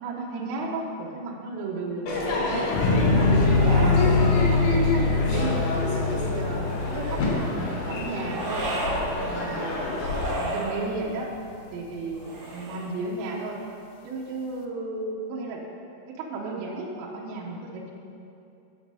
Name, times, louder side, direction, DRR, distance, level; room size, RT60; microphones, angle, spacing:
voice 1, 0.0-4.0 4.3-5.6 6.1-8.7 9.2-11.3 11.7-13.6 14.0-15.6 16.1-17.9, right 3 dB, 75° right, -1 dB, 2.3 m, -34 dB
Crowd / Fireworks, 2.1-10.3, left 2 dB, 65° left, 2.4 m, -28 dB
sound 1, 2.7-9.1 9.5-10.1, left 3 dB, 80° left, 2.5 m, -23 dB
sound 2, 6.6-7.4 8.3-9.0 9.9-10.8 12.1-13.0, right 1 dB, 45° right, 1.2 m, -33 dB
6.7 x 6.1 x 5.2 m, 2.7 s
omnidirectional pair, 4.7 m